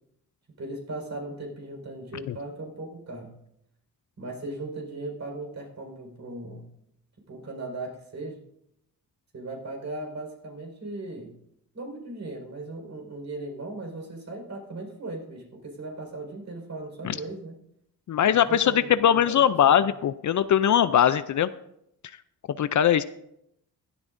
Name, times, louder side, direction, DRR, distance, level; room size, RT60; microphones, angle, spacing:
voice 1, 0.6-3.4 4.2-6.7 7.3-8.4 9.3-11.4 11.7-17.6 18.2-19.9, right 2 dB, 45° right, 2 dB, 4.7 m, -38 dB
voice 2, 18.1-21.5 22.6-23.0, left 9 dB, 50° left, 14 dB, 0.5 m, -21 dB
16.5 x 12.5 x 2.6 m, 0.77 s
cardioid pair, 95°, 38 cm